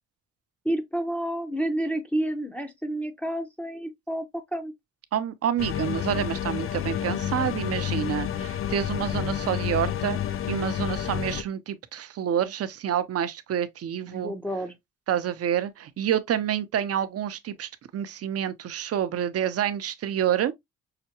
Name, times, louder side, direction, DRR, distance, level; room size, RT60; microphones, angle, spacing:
voice 1, 0.6-4.7 14.1-14.8, right 1 dB, 5° left, 0.7 m, -30 dB
voice 2, 5.1-10.2 10.5-14.3 15.1-20.5, right 9 dB, 50° right, 0.7 m, -28 dB
sound 1, 5.6-11.4, left 10 dB, 45° left, 0.4 m, -29 dB
5.7 x 2.1 x 2.8 m
cardioid pair, 90°, 30 cm